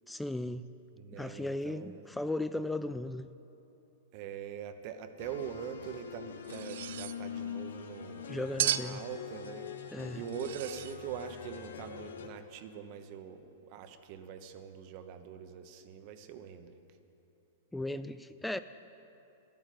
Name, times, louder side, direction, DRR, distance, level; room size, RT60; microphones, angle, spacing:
voice 1, 0.1-0.7 1.1-3.3 8.3-9.0 9.9-10.2 17.7-18.6, left 1 dB, 5° left, 12 dB, 0.3 m, -36 dB
voice 2, 1.0-2.0 4.1-9.7 10.1-16.8, right 8 dB, 50° right, 8 dB, 1.0 m, -43 dB
sound 1, 5.2-12.3, left 7 dB, 85° left, 1.0 m, -44 dB
sound 2, 6.4-7.2 8.6-9.0 10.3-11.0, right 12 dB, 70° right, 0.4 m, -34 dB
13.0 x 8.6 x 9.1 m, 2.8 s
hypercardioid pair, 125°, 0 cm